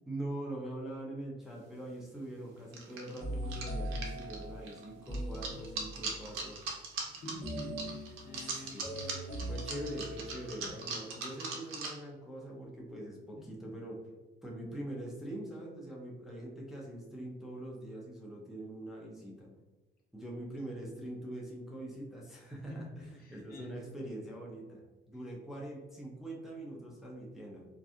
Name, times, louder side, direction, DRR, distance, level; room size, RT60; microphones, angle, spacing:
voice 1, 0.1-6.6 8.3-9.1 9.5-14.0 14.4-19.5 20.1-27.7, right 1 dB, ahead, -4 dB, 0.5 m, -43 dB
sound 1, 1.6-1.7 2.7-11.9, right 4 dB, 90° right, 0.5 m, -40 dB
sound 2, 3.2-6.2 7.4-10.7, equal, 25° left, 1.2 m, -41 dB
voice 2, 7.1-9.9 22.7-22.8 23.2-23.7, left 2 dB, 50° left, -2 dB, 0.7 m, -47 dB
2.6 x 2.3 x 2.5 m, 1.2 s
cardioid pair, 90°, 20 cm